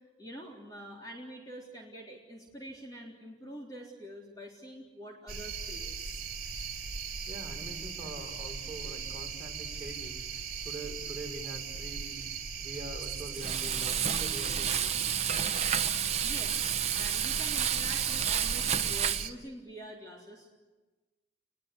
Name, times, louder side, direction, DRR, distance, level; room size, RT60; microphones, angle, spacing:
voice 1, 0.2-5.9 16.2-20.6, equal, 20° left, -2 dB, 3.7 m, -46 dB
sound 1, 5.3-19.3, right 5 dB, 55° right, 3.1 m, -38 dB
voice 2, 7.3-12.2 12.6-15.3, right 1 dB, 10° right, -1 dB, 5.6 m, -44 dB
Frying (food), 13.4-19.3, right 9 dB, 35° right, 0.9 m, -30 dB
29.5 x 21.5 x 8.3 m, 1.2 s
head